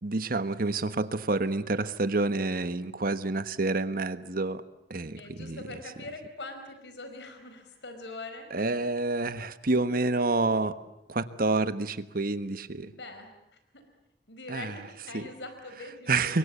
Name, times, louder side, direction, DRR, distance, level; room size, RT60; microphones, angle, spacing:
voice 1, 0.0-4.6 4.9-5.6 8.5-10.8 11.1-12.9 14.5-14.7 15.1-15.3 16.1-16.4, right 3 dB, 55° right, 12 dB, 1.4 m, -28 dB
voice 2, 5.2-8.6 12.9-13.8 14.3-16.4, left 2 dB, 90° left, 7 dB, 4.7 m, -43 dB
29.5 x 24.0 x 8.3 m, 0.86 s
head